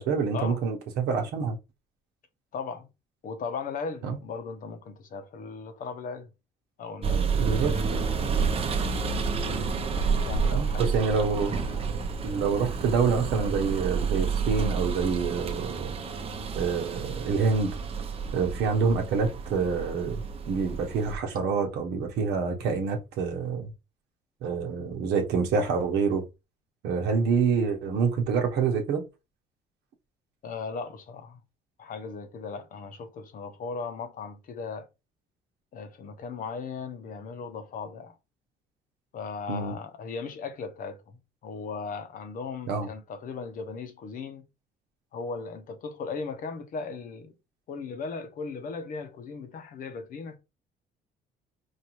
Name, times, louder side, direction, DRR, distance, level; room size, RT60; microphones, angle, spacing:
voice 1, 0.0-1.6 4.0-4.2 7.4-7.7 10.5-11.5 12.2-16.0 16.6-17.8 18.3-23.7 24.4-26.2 26.8-29.0 39.5-39.8 42.7-42.9, right 5 dB, 80° right, 1.0 m, -27 dB
voice 2, 2.5-2.9 3.2-6.3 6.8-7.2 7.5-9.0 9.9-11.8 30.4-31.4 31.8-34.9 35.7-38.2 39.1-41.0 41.4-44.4 45.1-47.3 47.7-50.4, left 5 dB, 55° left, 0.8 m, -37 dB
sound 1, 7.0-21.2, right 5 dB, 35° right, 0.7 m, -30 dB
4.7 x 2.6 x 3.0 m
cardioid pair, 110°, 17 cm